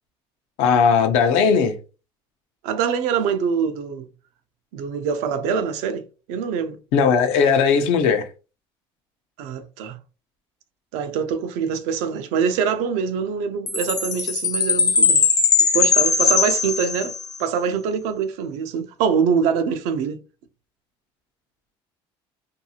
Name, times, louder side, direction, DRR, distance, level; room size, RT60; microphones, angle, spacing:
voice 1, 0.6-1.8 6.9-8.3, left 6 dB, 85° left, 0.6 m, -18 dB
voice 2, 2.6-4.1 4.7-6.8 9.4-10.0 10.9-15.2 15.7-17.1 17.4-20.2, right 6 dB, 90° right, 0.5 m, -24 dB
Chime, 13.7-17.4, left 5 dB, 35° left, 0.5 m, -19 dB
2.6 x 2.3 x 2.8 m
cardioid pair, 100°, 11 cm